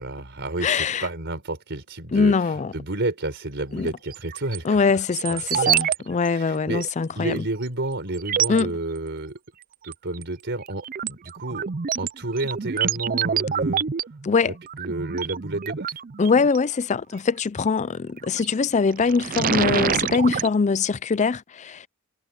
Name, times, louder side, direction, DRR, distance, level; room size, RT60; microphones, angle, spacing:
voice 1, 0.0-2.3 2.7-4.9 5.3-5.7 6.2-6.9 7.2-9.4 9.8-11.7 12.0-13.8 14.8-16.0, right 2 dB, 55° right, 4.3 m, -30 dB
voice 2, 0.6-1.0 2.1-2.7 3.7-3.9 4.6-7.4 8.5-8.7 14.2-14.5 16.2-21.9, left 5 dB, 35° left, 0.4 m, -22 dB
sound 1, 4.1-4.6 5.1-6.0 6.2-6.3 6.8-6.9 7.6-7.7 8.1-8.6 9.9-10.2 10.6-16.6 18.2-18.5 18.9-20.5, right 8 dB, 40° right, 0.5 m, -27 dB
head